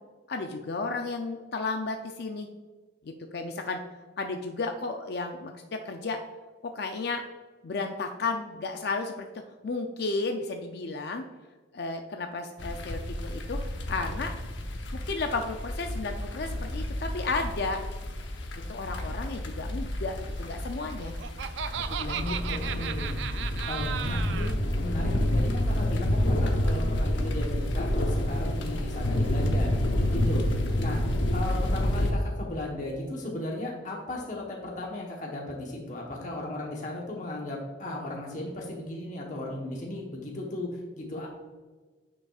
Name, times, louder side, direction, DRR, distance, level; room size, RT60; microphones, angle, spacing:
voice 1, 0.3-2.5 3.0-3.8 4.2-6.2 6.6-7.3 7.6-9.3 9.6-11.2 11.7-13.6 13.9-14.3 15.1-17.8 18.7-21.1 21.9-22.8 30.1-30.3, left 3 dB, 60° left, 5 dB, 0.4 m, -33 dB
sound 1, 12.6-32.1, left 1 dB, 80° left, 0.8 m, -29 dB
Laughter, 20.8-24.5, right 8 dB, 70° right, 0.4 m, -35 dB
voice 2, 22.0-23.2 23.7-30.5 30.8-31.0 31.3-41.3, left 1 dB, 40° left, -2 dB, 1.0 m, -36 dB
9.3 x 5.4 x 2.4 m, 1.4 s
head